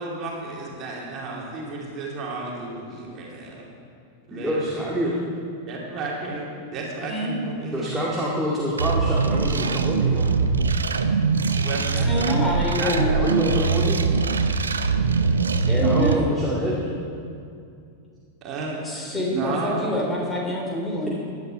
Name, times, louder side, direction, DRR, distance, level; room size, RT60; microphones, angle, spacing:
voice 1, 0.0-3.6 4.3-4.9 5.7-8.0 11.6-12.4 12.8-13.9 18.4-18.7 19.4-19.8, right 3 dB, 35° right, -3 dB, 2.8 m, -32 dB
voice 2, 4.3-5.2 7.7-10.3 13.2-14.0 15.8-16.9, equal, 5° right, -6 dB, 2.2 m, -26 dB
sound 1, 8.8-16.2, right 4 dB, 70° right, 0.7 m, -22 dB
voice 3, 12.0-13.1 15.7-16.3 19.1-21.1, left 1 dB, 15° left, -2 dB, 3.7 m, -25 dB
16.5 x 11.0 x 4.6 m, 2.4 s
figure-of-eight pair, 90°, 0 cm